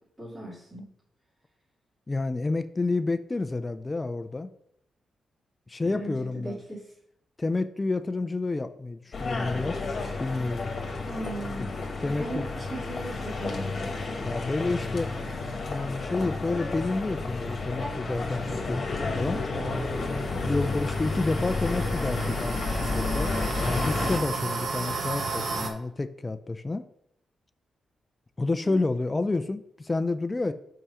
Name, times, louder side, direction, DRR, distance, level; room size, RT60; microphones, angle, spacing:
voice 1, 0.2-0.9 5.8-6.9 11.1-11.7 12.2-13.9 20.6-20.7 28.6-28.8, right 1 dB, 15° right, -7 dB, 2.7 m, -38 dB
voice 2, 2.1-4.5 5.7-6.6 7.4-9.8 10.2-10.7 12.0-12.5 14.2-15.1 15.7-19.4 20.5-23.3 23.6-26.9 28.4-30.5, left 3 dB, 25° left, 10 dB, 0.5 m, -29 dB
sound 1, 9.1-24.2, left 3 dB, 50° left, 1.6 m, -31 dB
sound 2, 19.7-25.7, right 4 dB, 65° right, 1.1 m, -34 dB
5.5 x 4.9 x 5.6 m, 0.73 s
cardioid pair, 65°, 0 cm